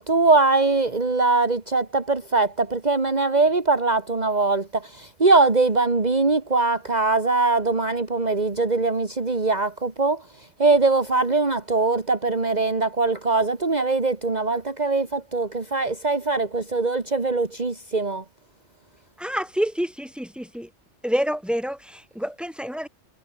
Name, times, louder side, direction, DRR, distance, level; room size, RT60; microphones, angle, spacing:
voice 1, 0.0-10.2 10.6-18.2, right 3 dB, 40° right, 2.1 m, -22 dB
voice 2, 19.2-20.7 21.0-22.9, equal, ahead, 5.5 m, -27 dB
omnidirectional pair, 1.1 m